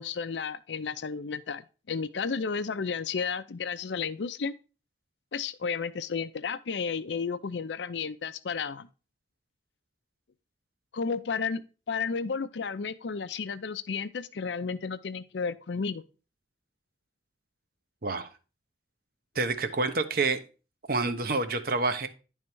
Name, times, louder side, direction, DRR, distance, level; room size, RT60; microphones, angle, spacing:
voice 1, 0.0-4.5 5.3-8.9 10.9-16.0, left 5 dB, 85° left, 0.5 m, -32 dB
voice 2, 19.3-20.4 20.9-22.1, right 3 dB, 55° right, 0.8 m, -28 dB
10.5 x 3.6 x 4.5 m
head